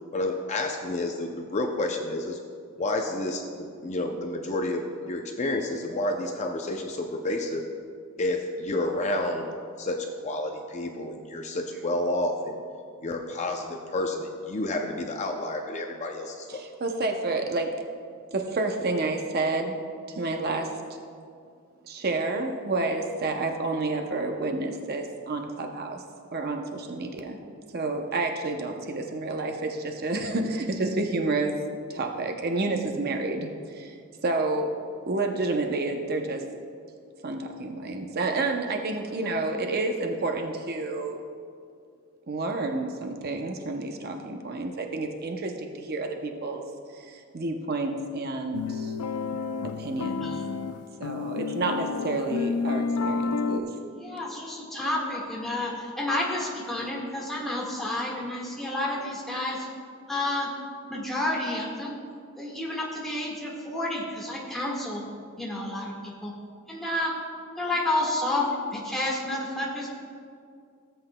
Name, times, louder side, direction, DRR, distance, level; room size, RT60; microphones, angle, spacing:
voice 1, 0.1-2.4 2.8-7.6 8.2-12.6 13.0-16.6, left 1 dB, 30° left, 3 dB, 0.5 m, -30 dB
voice 2, 16.5-17.8 18.3-19.8 20.1-20.7 21.8-26.0 26.3-27.4 27.7-31.6 31.9-34.0 34.2-34.7 35.1-36.4 37.2-41.2 42.3-46.6 46.9-48.9 49.8-50.3 51.0-53.7, right 2 dB, 45° right, 3 dB, 0.6 m, -29 dB
sound 1, 48.5-53.6, left 4 dB, 90° left, 0.4 m, -30 dB
voice 3, 50.2-50.6 53.9-59.7 60.1-60.5 60.9-62.0 62.4-65.0 65.4-66.3 66.7-67.1 67.6-69.9, left 1 dB, ahead, -5 dB, 1.6 m, -30 dB
17.0 x 7.9 x 2.2 m, 2.3 s
head